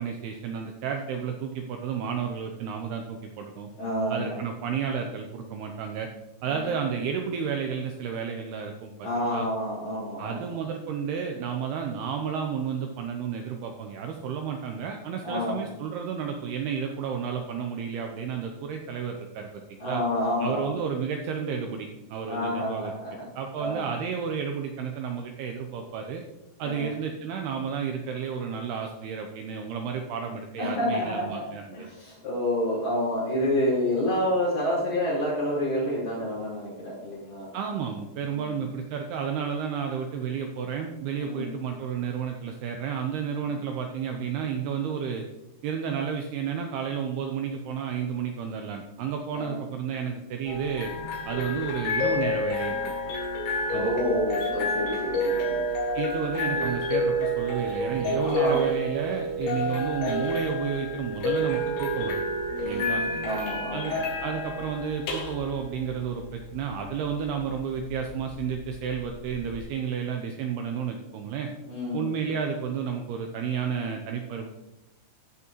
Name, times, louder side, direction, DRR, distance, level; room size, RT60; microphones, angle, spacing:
voice 1, 0.0-3.7 4.1-6.1 6.4-9.5 10.2-20.0 20.4-22.9 23.4-26.2 26.6-31.9 37.5-45.2 45.6-50.9 51.3-53.2 53.7-53.9 55.9-62.2 62.6-63.0 63.7-71.5 71.9-74.5, right 7 dB, 80° right, 4 dB, 2.3 m, -32 dB
voice 2, 3.8-4.4 6.5-6.6 9.0-10.6 15.2-15.6 19.8-20.7 22.3-23.1 23.6-23.8 26.6-26.9 30.6-31.4 31.7-37.5 38.2-38.5 41.2-41.5 43.4-43.5 49.3-49.6 53.7-55.6 58.1-58.6 62.6-64.0 71.7-72.0, left 1 dB, 50° left, -11 dB, 5.4 m, -29 dB
sound 1, 50.5-69.6, equal, 80° left, 4.3 m, -29 dB
15.0 x 6.2 x 3.0 m, 0.92 s
omnidirectional pair, 5.3 m